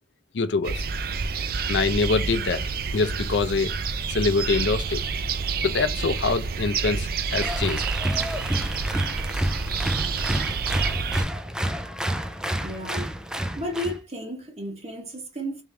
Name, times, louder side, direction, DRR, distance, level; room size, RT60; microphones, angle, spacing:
voice 1, 0.3-0.9 1.7-2.6 2.9-3.7 4.1-5.0 5.6-7.8, left 4 dB, 90° left, 0.5 m, -24 dB
sound 1, 0.6-11.2, right 5 dB, 55° right, 0.5 m, -28 dB
Applause, 7.3-14.0, right 1 dB, 5° right, 0.4 m, -29 dB
voice 2, 12.6-13.2 13.6-15.6, equal, 35° right, 1.0 m, -33 dB
3.6 x 3.4 x 3.2 m
head